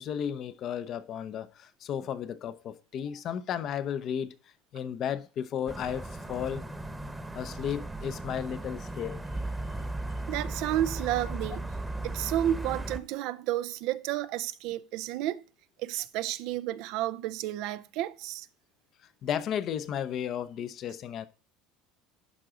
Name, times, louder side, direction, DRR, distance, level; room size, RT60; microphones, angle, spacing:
voice 1, 0.0-4.4 4.7-6.7 7.3-9.2 19.2-21.3, left 9 dB, 55° left, 0.7 m, -34 dB
sound 1, 5.7-13.0, right 2 dB, 10° right, 1.0 m, -36 dB
voice 2, 10.3-11.6 12.0-15.4 15.8-18.5, right 13 dB, 70° right, 0.5 m, -31 dB
11.5 x 4.8 x 3.8 m
supercardioid pair, 85°, 0 cm